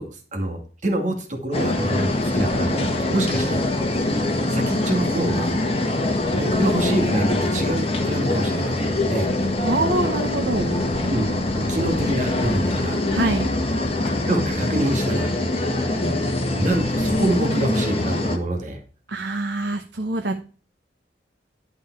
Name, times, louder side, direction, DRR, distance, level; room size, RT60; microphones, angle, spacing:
voice 1, 0.0-3.7 4.5-5.6 6.3-9.3 11.1-11.3 11.5-13.0 14.2-15.4 16.5-18.8, right 1 dB, 45° right, 3 dB, 2.2 m, -26 dB
sound 1, 1.5-18.4, left 1 dB, 35° left, 1.7 m, -23 dB
voice 2, 9.6-10.8 13.1-13.5 19.1-20.4, right 2 dB, 70° right, 5 dB, 1.1 m, -24 dB
12.0 x 5.4 x 4.6 m, 0.38 s
head